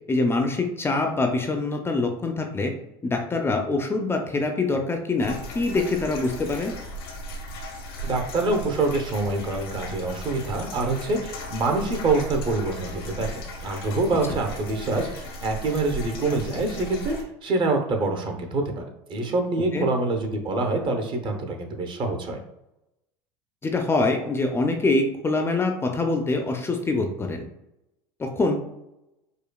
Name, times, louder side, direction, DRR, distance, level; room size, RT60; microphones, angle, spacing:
voice 1, 0.1-2.7 3.0-6.7 19.7-19.9 23.6-27.5 28.2-28.6, left 3 dB, 20° left, 3 dB, 0.5 m, -24 dB
sound 1, 5.2-17.2, equal, 80° left, 0.8 m, -36 dB
voice 2, 8.0-22.4, right 2 dB, 40° right, 4 dB, 0.8 m, -26 dB
5.0 x 2.2 x 2.3 m, 0.89 s
hypercardioid pair, 95°, 12 cm